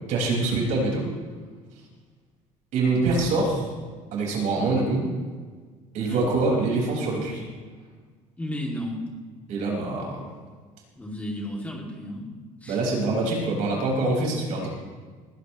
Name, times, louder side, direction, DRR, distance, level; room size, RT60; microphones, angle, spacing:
voice 1, 0.1-1.1 2.7-3.7 4.1-5.0 5.9-7.4 9.5-10.2 12.7-14.7, right 3 dB, 65° right, -2 dB, 5.3 m, -24 dB
voice 2, 8.4-9.1 11.0-12.3 12.6-12.8, left 1 dB, 10° left, -2 dB, 2.6 m, -33 dB
20.5 x 16.0 x 3.1 m, 1.5 s
cardioid pair, 140°, 14 cm